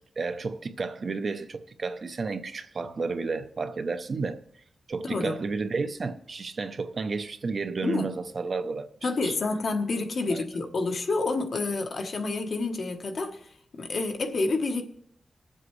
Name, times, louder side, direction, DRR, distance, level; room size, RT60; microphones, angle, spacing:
voice 1, 0.0-4.4 4.9-9.3 10.3-10.4, right 4 dB, 50° right, 0.6 m, -32 dB
voice 2, 5.0-5.4 7.8-8.1 9.0-14.8, left 3 dB, 60° left, 1.1 m, -29 dB
20.5 x 7.6 x 3.2 m
wide cardioid pair, 145°, 0 cm